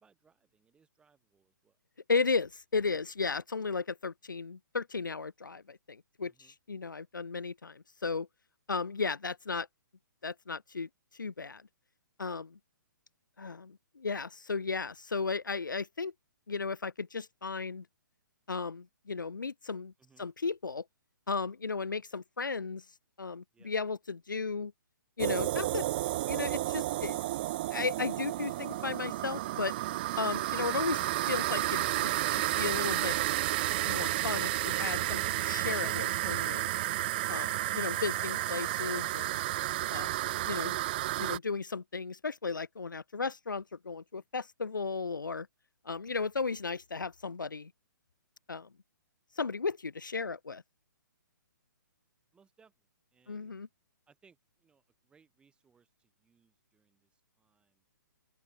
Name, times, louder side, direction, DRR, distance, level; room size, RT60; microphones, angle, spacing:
voice 1, 0.0-1.8 6.2-6.5 20.0-20.3 23.5-23.7 52.3-52.7 53.1-53.6 54.1-57.9, right 6 dB, 10° right, 7.9 m, -68 dB
voice 2, 2.1-8.3 8.7-9.7 10.2-11.6 12.2-12.6 13.4-16.1 16.5-17.8 18.5-19.9 20.2-20.8 21.3-22.8 23.2-24.7 25.2-25.9 26.3-27.2 27.7-29.7 30.2-33.2 33.8-36.7 37.3-39.4 39.9-40.2 40.4-40.8 41.2-45.5 45.8-47.7 48.5-48.7 49.4-50.6 53.3-53.7, left 4 dB, 70° left, 0.9 m, -35 dB
sound 1, 25.2-41.4, right 16 dB, 30° right, 0.4 m, -32 dB
open air
figure-of-eight pair, 130°, 11 cm